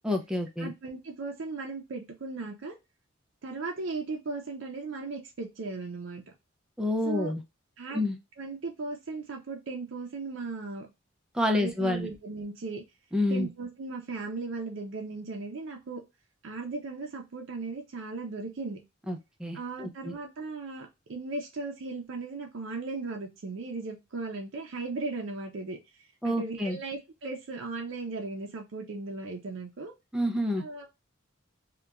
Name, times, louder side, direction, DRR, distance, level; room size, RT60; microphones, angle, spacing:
voice 1, 0.0-0.7 6.8-7.4 7.9-8.2 11.3-12.1 13.1-13.5 19.1-20.1 26.2-26.8 30.1-30.6, left 1 dB, 5° right, 4 dB, 0.4 m, -28 dB
voice 2, 0.6-2.7 3.4-6.2 7.1-7.3 7.8-8.0 8.4-10.9 11.4-12.8 13.3-16.0 16.4-18.8 19.5-25.8 26.2-29.9 30.6-30.9, right 3 dB, 65° right, 2 dB, 0.5 m, -37 dB
2.9 x 2.2 x 2.3 m, 0.23 s
head